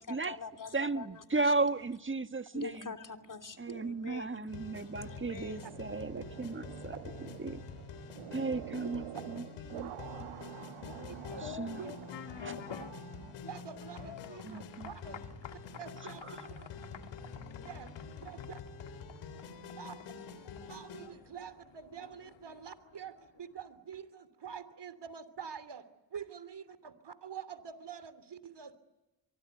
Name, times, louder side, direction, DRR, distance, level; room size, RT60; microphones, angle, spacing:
voice 1, 0.0-1.5 2.5-4.6 5.0-5.8, left 4 dB, 40° left, 3.3 m, -45 dB
voice 2, 0.7-2.9 3.6-6.9 7.4-7.6 8.3-9.4 9.7-9.9 11.4-11.8 12.4-12.5 14.4-14.9, right 3 dB, 25° right, 1.6 m, -35 dB
sound 1, 4.5-21.1, left 5 dB, 90° left, 3.5 m, -47 dB
sound 2, 4.7-13.3, right 12 dB, 85° right, 1.3 m, -48 dB
sound 3, 10.7-23.5, left 8 dB, 65° left, 2.1 m, -50 dB
voice 3, 11.1-11.5 11.7-12.0 12.8-12.9 13.5-15.2 15.5-16.5 17.6-17.9 18.2-18.6 19.8-20.0 20.7-28.7, right 7 dB, 55° right, 3.1 m, -46 dB
24.5 x 24.0 x 9.4 m
supercardioid pair, 40°, 49 cm